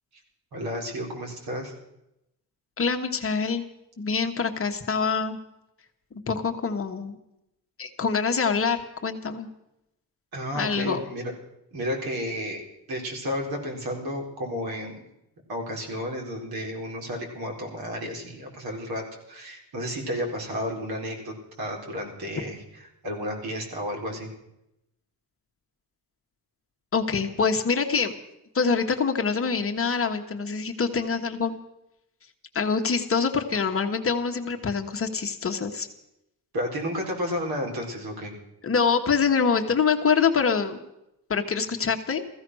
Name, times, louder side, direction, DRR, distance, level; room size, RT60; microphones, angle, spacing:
voice 1, 0.5-1.7 10.3-11.3 11.7-12.6 12.9-15.0 15.5-19.0 19.3-22.6 23.0-24.3 36.5-38.3, equal, 70° right, 0 dB, 4.6 m, -32 dB
voice 2, 2.8-3.6 4.0-5.4 6.1-7.2 7.8-9.5 10.5-11.0 26.9-28.1 28.5-31.6 32.5-35.9 38.6-40.8 41.3-42.3, left 5 dB, 35° left, 4 dB, 1.4 m, -25 dB
15.0 x 15.0 x 6.3 m, 0.85 s
cardioid pair, 140°, 38 cm